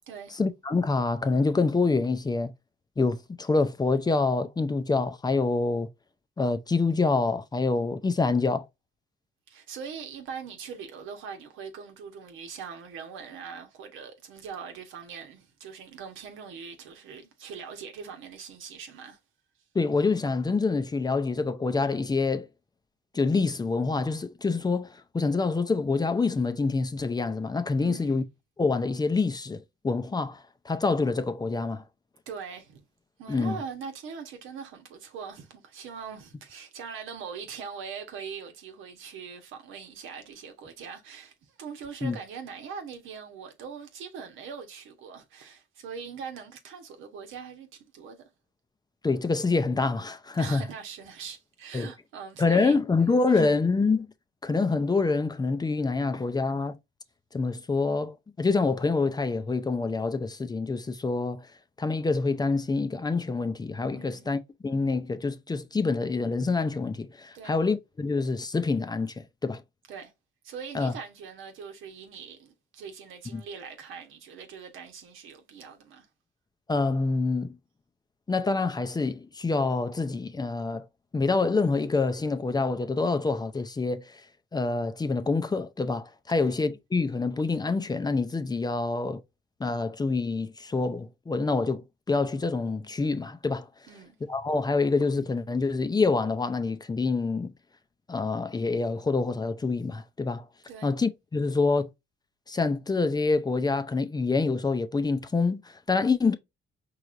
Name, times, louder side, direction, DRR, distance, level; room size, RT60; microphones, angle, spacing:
voice 1, 0.4-2.5 3.0-5.9 6.4-8.7 19.7-22.5 23.1-28.2 28.6-31.8 33.3-33.6 42.0-42.2 49.0-50.6 51.7-51.9 52.4-54.1 54.4-56.8 57.3-61.5 61.8-69.6 70.7-70.9 73.3-73.4 76.7-77.6 78.3-80.9 81.1-84.2 84.5-89.2 89.6-93.7 94.3-97.5 98.1-100.5 100.8-101.9 102.5-106.4, left 3 dB, 20° left, 0.5 m, -26 dB
voice 2, 9.5-19.2 27.8-28.2 32.3-32.8 33.2-48.3 50.4-53.4 63.9-64.3 67.3-67.6 69.9-70.1 70.4-76.1 86.3-86.5 93.9-94.2 100.7-100.9, right 6 dB, 85° right, 1.1 m, -42 dB
4.7 x 3.2 x 2.5 m
cardioid pair, 90°, 20 cm